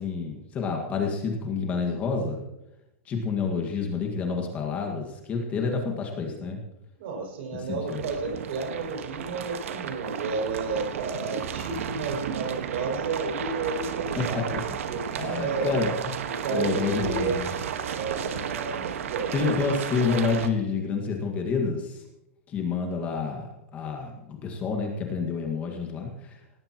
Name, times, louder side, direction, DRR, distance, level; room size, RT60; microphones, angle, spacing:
voice 1, 0.0-2.4 3.1-6.6 7.5-8.1 14.2-14.6 15.2-15.9 16.5-17.5 19.3-22.0 22.5-26.4, left 4 dB, 20° left, 2 dB, 1.8 m, -28 dB
voice 2, 7.0-14.6 14.9-15.7 16.3-17.4 17.9-19.5, right 4 dB, 55° right, 2 dB, 6.1 m, -32 dB
sound 1, 7.9-20.5, right 8 dB, 75° right, 1.5 m, -33 dB
18.0 x 16.0 x 3.0 m, 0.89 s
supercardioid pair, 165°, 7 cm